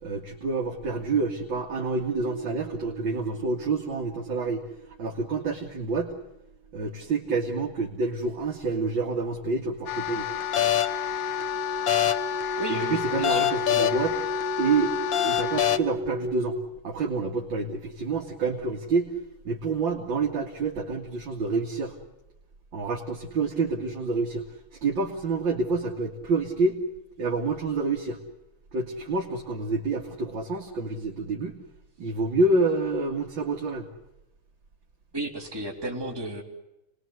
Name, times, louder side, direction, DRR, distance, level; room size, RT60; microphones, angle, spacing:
voice 1, 0.0-4.6 5.0-6.1 6.7-10.3 12.7-14.2 14.6-16.6 16.8-19.1 19.4-22.0 22.7-24.4 24.7-26.8 27.2-28.2 28.7-31.6 32.0-33.9, right 3 dB, 60° right, 0 dB, 2.9 m, -28 dB
sound 1, 9.4-16.7, equal, 40° right, 1.4 m, -35 dB
sound 2, 9.9-15.8, left 12 dB, 65° left, 1.8 m, -27 dB
voice 2, 12.6-13.5 35.1-36.4, right 2 dB, 10° right, -1 dB, 3.7 m, -33 dB
29.5 x 21.0 x 8.1 m, 0.91 s
omnidirectional pair, 2.3 m